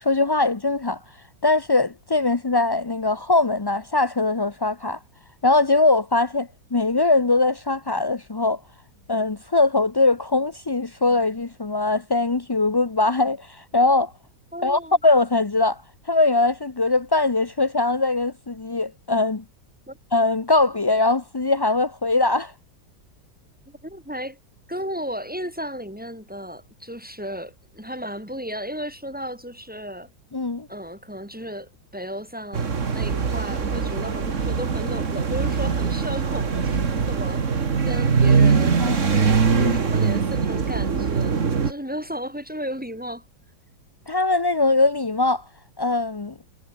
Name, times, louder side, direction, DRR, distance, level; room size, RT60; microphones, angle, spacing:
voice 1, 0.0-1.0 1.4-5.0 5.4-8.6 9.1-14.1 14.6-15.8 16.1-19.4 20.1-22.5 30.3-30.7 38.8-39.1 39.5-39.8 44.1-45.4 45.8-46.3, left 3 dB, 35° left, 0.4 m, -21 dB
voice 2, 14.5-15.0 19.9-20.0 23.6-24.4 24.7-30.1 30.7-38.8 39.1-43.2, equal, 5° right, 4.9 m, -34 dB
sound 1, 32.5-41.7, right 5 dB, 40° right, 2.0 m, -22 dB
omnidirectional pair, 2.0 m